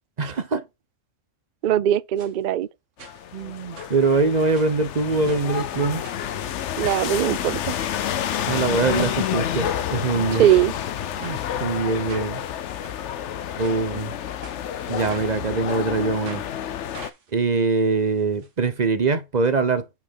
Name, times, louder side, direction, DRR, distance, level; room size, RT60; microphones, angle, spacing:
voice 1, 0.2-0.6 3.3-6.0 8.5-10.5 11.2-12.4 13.6-14.1 14.9-16.4 17.3-20.0, right 4 dB, 40° right, 0.7 m, -23 dB
voice 2, 1.6-2.7 6.8-7.7 10.4-10.7, right 11 dB, 80° right, 0.4 m, -20 dB
sound 1, 2.2-2.3 3.0-3.4 3.7-4.8 5.3-5.6 6.0-6.2 6.8-7.1 7.5-7.8 8.4-8.5 9.0-9.2 9.6-10.1 10.5-10.7 11.2-11.4 12.1-12.3 12.8-12.9 13.6-13.8 14.4-15.4 15.7-15.8 16.2-16.5 16.9-18.5 18.8-18.9 19.1-19.2, right 4 dB, 60° right, 1.5 m, -43 dB
sound 2, 3.0-17.1, left 10 dB, 60° left, 0.9 m, -29 dB
5.8 x 4.4 x 5.5 m
omnidirectional pair, 1.5 m